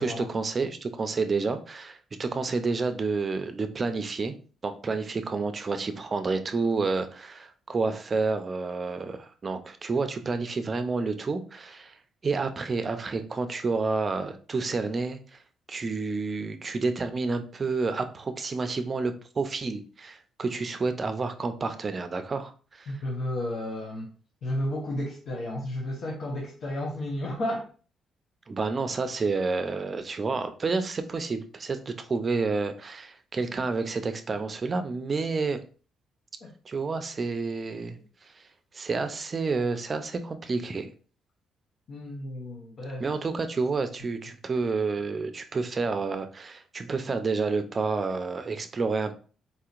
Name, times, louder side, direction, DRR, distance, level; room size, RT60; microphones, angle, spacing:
voice 1, 0.0-4.3 4.6-12.0 12.2-15.2 15.7-22.9 28.5-35.6 36.7-38.0 38.7-40.9 43.0-49.1, right 4 dB, 35° right, 8 dB, 0.5 m, -29 dB
voice 2, 22.9-24.1 24.4-27.6 36.4-36.5 41.9-43.1, left 1 dB, 60° left, -2 dB, 0.9 m, -32 dB
4.2 x 2.8 x 2.4 m, 0.39 s
cardioid pair, 90°, 0 cm